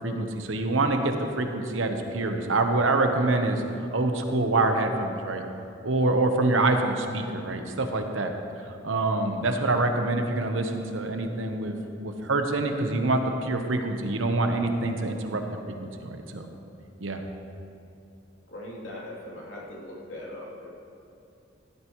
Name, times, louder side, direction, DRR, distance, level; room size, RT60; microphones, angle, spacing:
voice 1, 0.0-3.6 3.9-5.4 5.8-8.3 8.8-16.5 17.0-17.2, right 2 dB, 80° right, 5 dB, 1.1 m, -26 dB
voice 2, 18.5-20.8, left 1 dB, 70° left, -5 dB, 3.1 m, -40 dB
15.5 x 12.0 x 3.1 m, 2.7 s
head